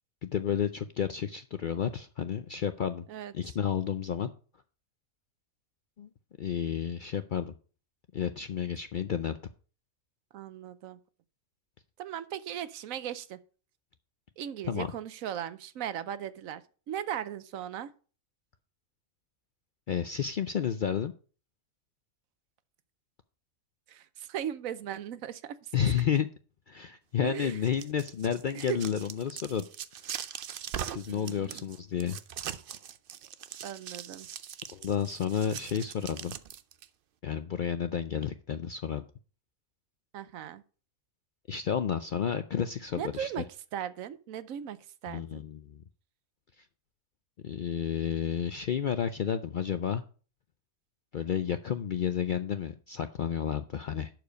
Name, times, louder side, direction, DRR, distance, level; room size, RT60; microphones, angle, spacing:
voice 1, 0.2-3.0 3.3-4.3 6.0-6.1 6.4-7.5 8.1-9.4 14.7-14.9 19.9-21.1 25.7-26.3 26.7-29.7 30.9-32.2 34.7-36.4 37.2-39.0 41.5-43.3 45.1-45.8 47.4-50.0 51.1-54.1, left 8 dB, 65° left, 0.5 m, -31 dB
voice 2, 10.3-11.0 12.0-13.4 14.4-17.9 23.9-25.9 27.2-27.6 28.5-28.8 31.1-31.6 33.6-34.3 40.1-40.6 42.9-43.5 43.7-45.5, right 10 dB, 85° right, 1.1 m, -38 dB
sound 1, 27.5-36.9, right 9 dB, 60° right, 0.6 m, -41 dB
11.5 x 4.8 x 5.1 m
omnidirectional pair, 1.4 m